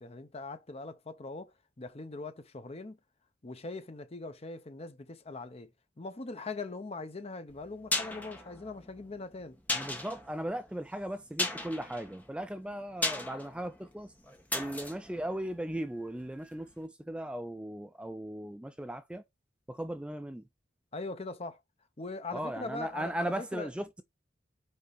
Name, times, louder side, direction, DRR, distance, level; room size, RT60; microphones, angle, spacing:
voice 1, 0.0-3.0 3.4-5.7 6.0-9.6 20.9-21.6 22.0-23.7, left 3 dB, 35° left, 0.7 m, -41 dB
sound 1, 7.5-16.4 16.6-16.7, left 2 dB, 10° left, 1.2 m, -37 dB
voice 2, 9.7-14.1 14.5-19.2 19.7-20.4 22.3-24.0, right 1 dB, 5° right, 0.3 m, -37 dB
5.4 x 4.6 x 4.1 m
head